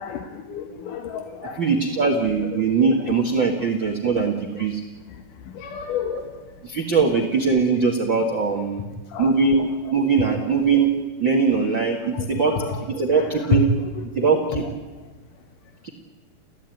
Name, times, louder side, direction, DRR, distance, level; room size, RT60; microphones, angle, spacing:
voice 1, 0.0-1.7 5.5-6.2 9.1-9.3 12.1-12.8 13.1-13.6, left 8 dB, 70° left, 6 dB, 2.7 m, -29 dB
voice 2, 1.5-4.8 6.1-6.2 6.6-8.8 9.2-10.9 11.2-13.7 14.1-14.7 15.8-15.9, right 4 dB, 40° right, 2 dB, 1.9 m, -21 dB
30.0 x 15.5 x 9.2 m, 1.2 s
omnidirectional pair, 4.1 m